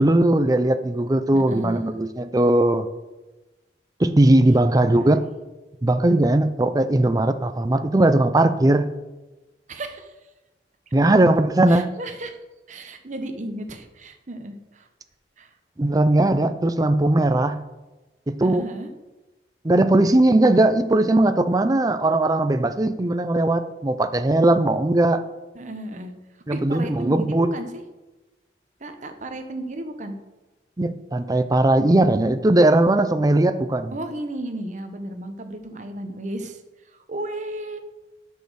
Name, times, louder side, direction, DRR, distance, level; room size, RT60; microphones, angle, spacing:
voice 1, 0.0-2.9 4.0-5.3 5.8-8.9 10.9-11.9 15.8-17.6 18.3-18.6 19.6-25.2 26.5-27.5 30.8-34.0, right 1 dB, 20° right, 10 dB, 0.5 m, -19 dB
voice 2, 1.3-1.9 4.4-4.6 4.8-5.2 9.7-10.1 11.7-12.4 12.7-14.9 15.4-15.5 18.4-18.9 25.5-27.8 28.8-30.2 33.9-37.8, right 1 dB, 45° right, 7 dB, 1.0 m, -34 dB
8.5 x 6.5 x 6.2 m, 1.1 s
head